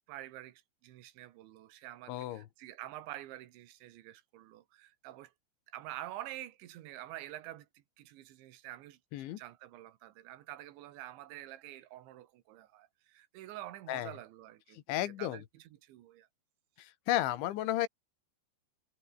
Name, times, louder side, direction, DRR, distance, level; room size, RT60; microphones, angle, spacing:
voice 1, 0.1-5.3 5.7-9.0 9.4-16.3, right 14 dB, 85° right, 3.8 m, -48 dB
voice 2, 2.1-2.5 9.1-9.4 13.9-14.1 14.8-15.4 16.8-17.9, left 14 dB, 90° left, 3.8 m, -33 dB
omnidirectional pair, 5.2 m